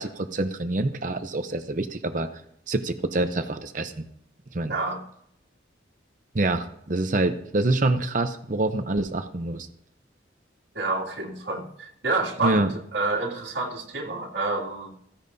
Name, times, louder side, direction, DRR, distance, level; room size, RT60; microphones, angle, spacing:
voice 1, 0.0-2.3 2.7-4.0 4.5-4.7 6.3-9.7 12.4-12.7, right 2 dB, 45° right, 8 dB, 0.7 m, -26 dB
voice 2, 4.7-5.0 10.7-12.7 12.9-14.9, right 3 dB, 65° right, -2 dB, 2.5 m, -28 dB
15.5 x 15.0 x 2.7 m, 0.72 s
head